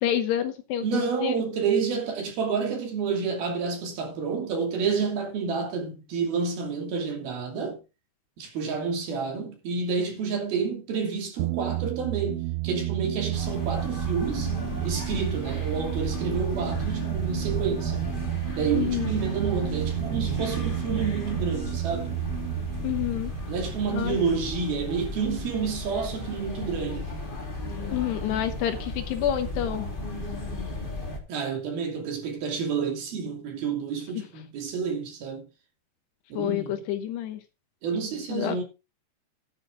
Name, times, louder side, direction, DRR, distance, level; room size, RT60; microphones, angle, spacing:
voice 1, 0.0-1.3 18.7-19.2 22.8-23.3 23.9-24.2 27.9-29.9 36.3-37.4 38.3-38.6, left 11 dB, 75° left, 2.9 m, -28 dB
voice 2, 0.8-7.8 8.4-14.5 14.8-18.1 18.5-22.2 23.5-27.1 31.3-35.5 36.3-36.9 37.8-38.6, right 5 dB, 60° right, 4.4 m, -29 dB
sound 1, 11.4-24.6, right 19 dB, 85° right, 3.1 m, -31 dB
sound 2, 13.3-31.2, left 2 dB, 25° left, 1.1 m, -35 dB
11.5 x 10.5 x 3.7 m
omnidirectional pair, 5.2 m